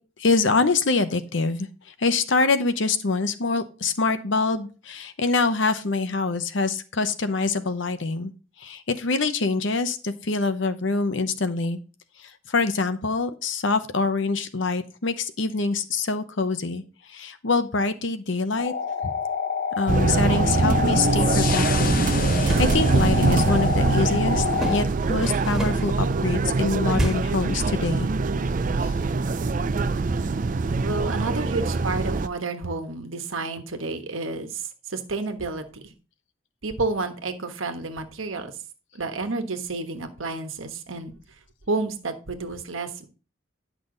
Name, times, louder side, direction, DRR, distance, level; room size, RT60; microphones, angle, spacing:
voice 1, 0.2-1.7 2.0-8.3 8.6-11.8 12.2-16.8 17.1-18.7 19.0-19.1 19.8-22.0 22.3-28.1 28.8-28.9, left 3 dB, 65° left, 10 dB, 0.9 m, -25 dB
sound 1, 18.6-24.8, left 6 dB, 45° left, 0.7 m, -27 dB
sound 2, 19.9-32.3, right 3 dB, 40° right, 0.4 m, -23 dB
sound 3, 22.4-22.8 24.5-26.0 26.9-27.4, equal, 5° right, 1.6 m, -31 dB
voice 2, 30.8-35.9 36.6-38.5 38.9-41.1 41.7-43.1, right 3 dB, 75° right, 7 dB, 1.4 m, -30 dB
10.5 x 6.0 x 3.9 m, 0.35 s
head